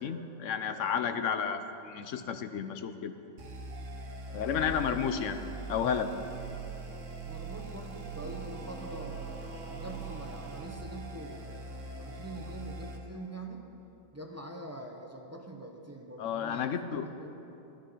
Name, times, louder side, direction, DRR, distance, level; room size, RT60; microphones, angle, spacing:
voice 1, 0.0-3.1 4.3-5.4 5.7-6.1 16.2-17.1, left 7 dB, 70° left, 9 dB, 0.9 m, -32 dB
sound 1, 3.4-13.0, right 3 dB, 65° right, 1.5 m, -41 dB
voice 2, 4.9-5.3 7.3-13.7 14.1-17.4, right 1 dB, 15° right, 1 dB, 0.7 m, -44 dB
11.5 x 11.5 x 5.7 m, 3.0 s
omnidirectional pair, 1.5 m